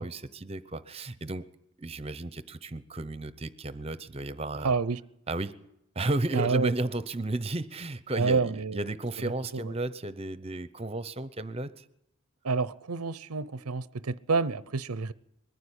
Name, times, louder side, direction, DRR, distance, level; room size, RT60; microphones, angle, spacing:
voice 1, 0.0-1.4 1.8-4.7 5.3-5.5 5.9-11.8, right 2 dB, 25° right, 0.8 m, -33 dB
voice 2, 4.6-5.0 6.3-6.7 8.2-8.9 9.2-9.7 12.4-15.1, right 4 dB, 90° right, 0.7 m, -28 dB
22.0 x 14.5 x 9.9 m
head